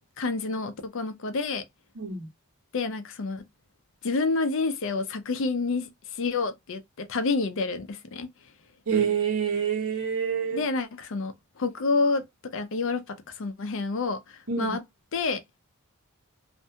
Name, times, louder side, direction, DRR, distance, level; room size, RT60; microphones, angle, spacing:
voice 1, 0.2-1.6 2.7-3.4 4.0-8.3 10.5-12.2 12.5-14.8 15.1-15.4, left 3 dB, 60° left, 0.5 m, -28 dB
voice 2, 1.9-2.3 8.9-10.6 14.5-14.8, right 7 dB, 80° right, 1.0 m, -27 dB
2.5 x 2.2 x 2.7 m
head